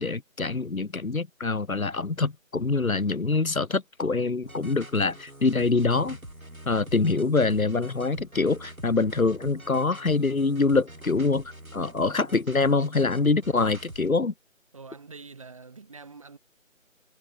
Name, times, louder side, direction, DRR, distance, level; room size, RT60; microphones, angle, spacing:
voice 1, 0.0-6.2 6.7-11.4 11.7-14.3, left 3 dB, 85° left, 1.1 m, -25 dB
sound 1, 4.4-14.1, right 1 dB, 90° right, 4.3 m, -45 dB
voice 2, 14.7-16.4, right 4 dB, 25° right, 3.7 m, -45 dB
figure-of-eight pair, 165°, 41 cm